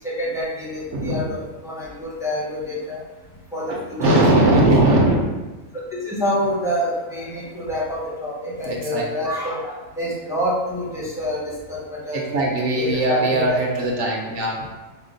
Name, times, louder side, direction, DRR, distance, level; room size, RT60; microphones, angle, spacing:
voice 1, 0.0-3.0 3.5-4.5 4.8-4.9 5.9-9.7 10.0-11.4 11.7-11.8 12.0-12.4 12.8-13.9, equal, 5° right, -6 dB, 0.8 m, -27 dB
voice 2, 0.9-1.2 3.7-5.2 8.6-9.0 12.1-14.7, right 1 dB, 65° right, -1 dB, 0.9 m, -19 dB
4.9 x 2.3 x 3.8 m, 1.2 s
omnidirectional pair, 1.4 m